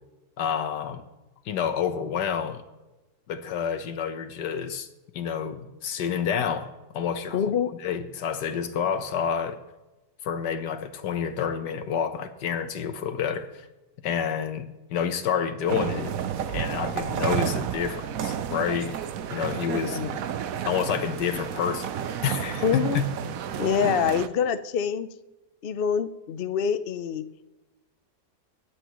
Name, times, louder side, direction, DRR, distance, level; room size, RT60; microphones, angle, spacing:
voice 1, 0.4-1.0 1.4-2.6 3.3-4.9 5.1-7.5 7.8-9.6 10.2-13.7 14.0-16.1 16.5-19.0 19.3-20.0 20.6-21.9 22.2-23.1, left 7 dB, 80° left, 1.6 m, -29 dB
voice 2, 7.3-7.7 20.0-20.1 22.6-23.0 23.6-25.1 25.6-27.4, left 7 dB, 60° left, 0.6 m, -25 dB
sound 1, 15.7-24.3, right 9 dB, 65° right, 1.0 m, -31 dB
24.0 x 9.9 x 3.1 m
omnidirectional pair, 1.8 m